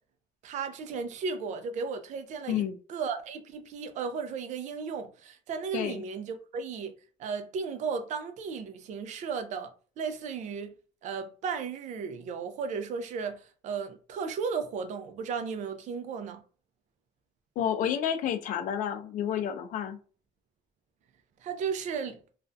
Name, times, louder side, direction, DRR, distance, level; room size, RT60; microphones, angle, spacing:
voice 1, 0.4-6.9 7.2-10.8 11.0-16.4 21.4-22.2, right 5 dB, 55° right, 0.4 m, -35 dB
voice 2, 17.6-20.0, left 9 dB, 60° left, 0.4 m, -30 dB
2.4 x 2.1 x 2.5 m
cardioid pair, 130°, 15 cm